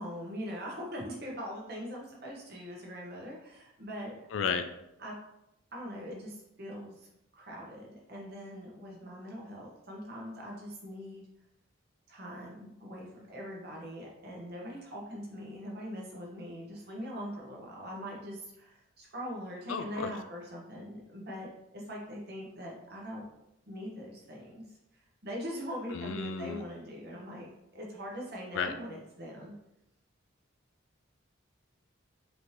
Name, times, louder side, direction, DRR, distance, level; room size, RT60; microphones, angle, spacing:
voice 1, 0.0-4.2 5.0-5.1 5.7-7.1 7.3-11.3 12.1-23.4 23.7-24.6 25.2-27.5 27.7-29.5, equal, 50° right, -2 dB, 1.0 m, -42 dB
voice 2, 4.3-4.6 19.7-20.1 25.9-26.6 28.5-28.7, left 6 dB, 70° left, 9 dB, 0.4 m, -33 dB
4.2 x 2.8 x 3.3 m, 0.84 s
head